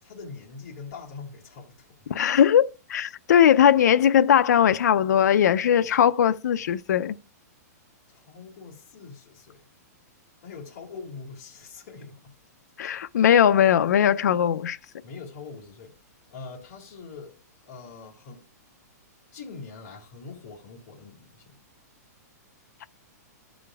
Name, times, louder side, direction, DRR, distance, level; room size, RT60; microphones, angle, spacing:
voice 1, 0.0-2.0 8.1-9.6 10.4-12.3 15.0-15.9 16.3-17.4 17.6-18.4 19.3-21.5, left 4 dB, 40° left, 2.3 m, -43 dB
voice 2, 2.1-7.2 12.8-14.8, left 9 dB, 80° left, 0.4 m, -19 dB
13.0 x 5.0 x 2.3 m
hypercardioid pair, 175°, 9 cm